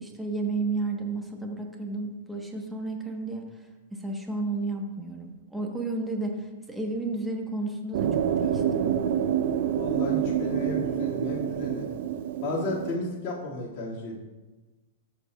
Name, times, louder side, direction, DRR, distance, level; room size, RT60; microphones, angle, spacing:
voice 1, 0.0-3.5 3.9-8.9, right 3 dB, 5° right, 1 dB, 1.1 m, -32 dB
sound 1, 7.9-13.0, right 9 dB, 65° right, 0.6 m, -27 dB
voice 2, 9.7-11.9 12.4-14.2, left 2 dB, 40° left, -6 dB, 2.1 m, -33 dB
14.0 x 6.5 x 2.4 m, 1.2 s
hypercardioid pair, 135°, 0 cm